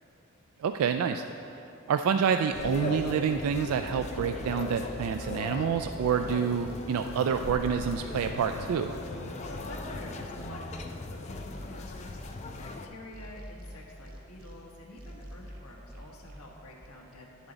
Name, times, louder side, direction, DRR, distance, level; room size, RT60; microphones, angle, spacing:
voice 1, 0.6-1.2 1.9-9.0, right 7 dB, 80° right, 7 dB, 0.3 m, -28 dB
sound 1, 2.5-12.9, left 3 dB, 30° left, 0.4 m, -39 dB
sound 2, 3.0-3.5 3.9-5.3 5.7-7.1 7.6-9.0 9.4-10.8 11.3-12.7 13.1-14.5 15.0-16.4 16.8-16.9, equal, 40° right, 1.3 m, -45 dB
Bowed string instrument, 6.9-11.9, left 1 dB, 60° left, 0.9 m, -47 dB
voice 2, 9.5-17.5, left 1 dB, 90° left, -2 dB, 1.4 m, -48 dB
10.0 x 7.2 x 4.0 m, 2.8 s
head